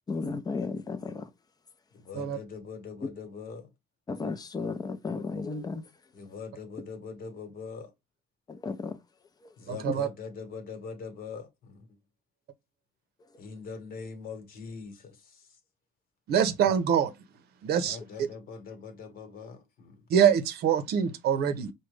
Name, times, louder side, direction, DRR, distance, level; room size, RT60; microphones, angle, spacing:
voice 1, 0.1-1.3 4.1-5.8 8.5-9.0, left 4 dB, 25° left, 0.5 m, -34 dB
voice 2, 1.9-3.7 6.1-7.9 9.6-11.9 13.4-15.5 17.8-20.0, left 5 dB, 60° left, 1.2 m, -42 dB
voice 3, 9.7-10.1 16.3-17.1 17.6-18.3 20.1-21.7, right 8 dB, 70° right, 0.7 m, -25 dB
4.9 x 2.2 x 3.2 m
cardioid pair, 110°, 17 cm